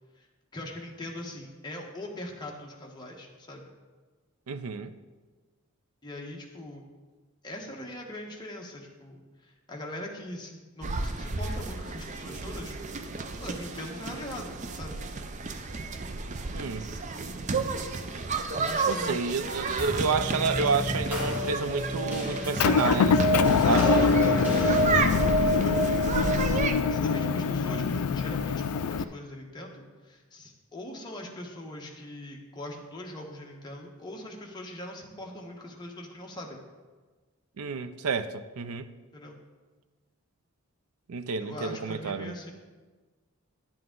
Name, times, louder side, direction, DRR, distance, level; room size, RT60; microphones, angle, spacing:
voice 1, 0.5-3.6 6.0-6.8 7.4-12.8 13.4-15.0 18.5-19.2 20.0-20.9 23.6-36.6 39.1-39.4 41.4-42.5, left 1 dB, 20° left, 1.1 m, -41 dB
voice 2, 4.5-4.9 16.5-16.9 18.9-24.1 37.6-38.9 41.1-42.4, right 5 dB, 85° right, 0.5 m, -30 dB
sound 1, 10.8-26.8, right 4 dB, 35° right, 0.5 m, -33 dB
sound 2, 19.8-28.5, equal, 10° right, 1.8 m, -29 dB
Motor vehicle (road) / Engine, 22.6-29.0, left 6 dB, 90° left, 0.4 m, -25 dB
10.5 x 7.8 x 3.8 m
head